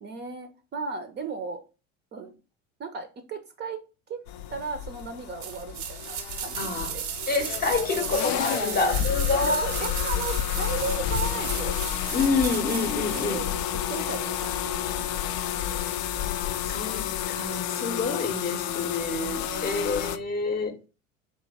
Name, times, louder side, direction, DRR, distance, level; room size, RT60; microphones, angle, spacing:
voice 1, 0.0-1.6 2.1-2.3 2.8-3.8 4.1-4.2 4.5-7.0 8.6-8.7 9.3-12.2 13.1-15.2 15.6-16.2 17.9-18.5 19.3-19.8, right 4 dB, 25° right, 0.6 m, -36 dB
sound 1, 4.3-20.2, left 11 dB, 55° left, 0.5 m, -30 dB
sound 2, 5.4-13.3 13.6-13.7, right 9 dB, 65° right, 0.7 m, -35 dB
voice 2, 6.5-6.9 7.3-9.7 12.1-13.4 16.6-20.8, left 3 dB, 25° left, 0.7 m, -28 dB
3.6 x 2.8 x 4.1 m
figure-of-eight pair, 70°, 39 cm